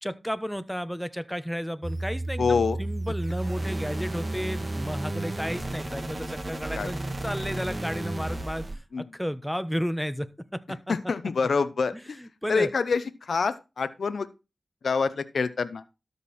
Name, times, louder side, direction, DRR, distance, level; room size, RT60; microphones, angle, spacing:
voice 1, 0.0-8.7 9.0-10.3 10.5-10.9 11.9-12.7, equal, ahead, 11 dB, 1.2 m, -33 dB
sound 1, 1.8-8.8, right 2 dB, 40° right, 2.5 m, -32 dB
voice 2, 2.4-2.8 6.8-6.9 8.9-9.0 10.9-12.2 12.5-14.3 14.8-15.8, left 5 dB, 80° left, 13 dB, 0.8 m, -26 dB
13.0 x 5.4 x 4.3 m, 0.27 s
cardioid pair, 45°, 0 cm